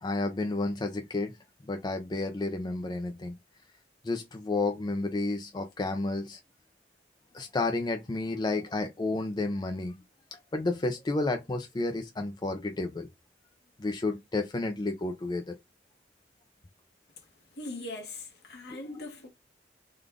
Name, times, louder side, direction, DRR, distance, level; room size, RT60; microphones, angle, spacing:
voice 1, 0.0-1.4 1.6-3.3 4.0-6.4 7.3-9.9 10.3-13.1 13.8-15.5 18.7-19.0, left 2 dB, 25° left, 0.4 m, -31 dB
voice 2, 17.2-19.3, left 2 dB, 65° left, 1.3 m, -41 dB
3.7 x 2.4 x 3.4 m
head